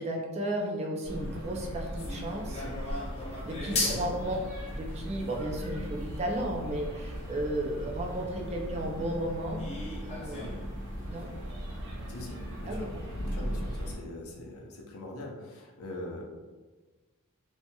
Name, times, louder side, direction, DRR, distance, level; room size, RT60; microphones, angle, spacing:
voice 1, 0.0-2.8 3.4-4.4 4.7-9.6 10.0-10.5 11.1-11.3 12.7-13.1, right 1 dB, 30° right, 1 dB, 0.4 m, -34 dB
sound 1, 1.0-13.9, equal, 75° right, 0.8 m, -38 dB
sound 2, 2.0-7.8 8.3-8.4 8.8-8.9 9.6-10.7 11.0-11.1 11.4-11.5 12.1-12.2 12.4-12.6, left 3 dB, 30° left, 0.5 m, -38 dB
voice 2, 3.7-4.3 10.3-10.5 12.1-16.2, left 1 dB, 80° left, 0 dB, 0.6 m, -42 dB
2.8 x 2.6 x 2.2 m, 1.3 s
head